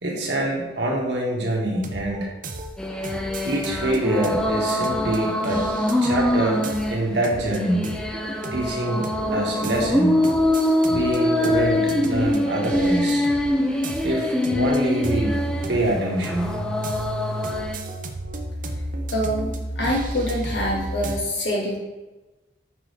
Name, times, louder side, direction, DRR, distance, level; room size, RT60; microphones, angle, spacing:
voice 1, 0.0-2.3 3.4-5.7 6.0-6.6 6.9-7.9 8.5-10.2 10.9-13.3 14.0-15.4 15.7-16.5, right 1 dB, 70° right, -2 dB, 1.6 m, -25 dB
sound 1, 1.7-21.2, right 1 dB, 45° right, 0.6 m, -33 dB
sound 2, 2.8-17.8, left 1 dB, 5° left, 0.4 m, -24 dB
voice 2, 19.1-21.8, equal, 70° left, -2 dB, 1.7 m, -25 dB
6.2 x 6.1 x 3.3 m, 1.1 s
head